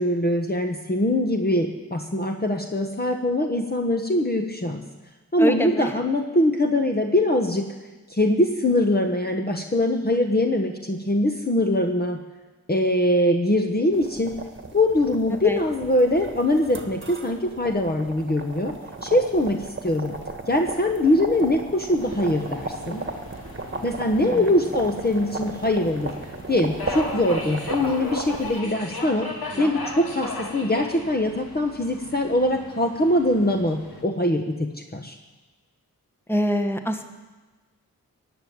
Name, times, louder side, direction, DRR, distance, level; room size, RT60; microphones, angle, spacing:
voice 1, 0.0-4.8 5.3-7.6 8.1-12.2 12.7-14.3 14.7-18.7 19.0-19.6 19.8-20.1 20.5-23.0 23.8-26.1 26.5-29.3 29.6-35.2, left 1 dB, 25° left, 4 dB, 1.2 m, -22 dB
voice 2, 5.4-5.9 15.4-15.6 24.2-24.4 29.5-29.7 36.3-37.0, equal, 5° left, 6 dB, 1.4 m, -25 dB
sound 1, 13.9-28.6, right 3 dB, 35° right, 1.5 m, -36 dB
Subway metro underground, 22.0-34.0, left 2 dB, 80° left, 2.5 m, -37 dB
15.0 x 7.2 x 9.5 m, 1.2 s
cardioid pair, 50°, 36 cm